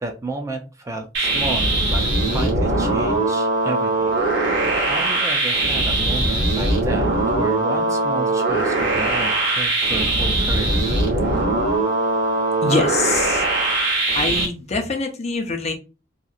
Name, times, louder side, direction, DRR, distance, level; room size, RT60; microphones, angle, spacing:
voice 1, 0.0-4.1 4.4-10.8 11.1-11.3, right 2 dB, 15° right, 4 dB, 0.3 m, -32 dB
sound 1, 1.1-14.5, right 2 dB, 75° right, 1.0 m, -21 dB
voice 2, 12.6-13.4 14.1-15.7, left 3 dB, 35° left, 4 dB, 0.5 m, -24 dB
2.8 x 2.4 x 2.3 m, 0.30 s
head